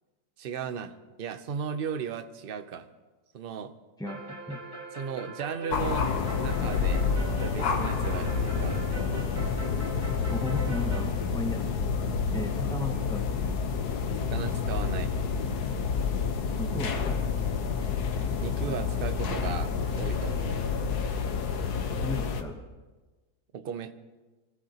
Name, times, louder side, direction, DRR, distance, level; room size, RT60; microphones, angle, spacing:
voice 1, 0.4-2.9 3.3-3.7 4.9-6.1 6.4-8.9 14.2-15.1 18.4-20.7 23.5-23.9, right 7 dB, 50° right, 9 dB, 0.7 m, -36 dB
sound 1, 4.1-11.1, right 2 dB, 30° right, 2.0 m, -41 dB
sound 2, 5.7-22.4, left 5 dB, 80° left, 1.5 m, -29 dB
voice 2, 10.3-11.7 12.3-13.3 16.6-17.2 22.0-22.6, left 1 dB, 5° left, 3 dB, 0.3 m, -35 dB
23.5 x 15.0 x 2.9 m, 1.2 s
omnidirectional pair, 1.7 m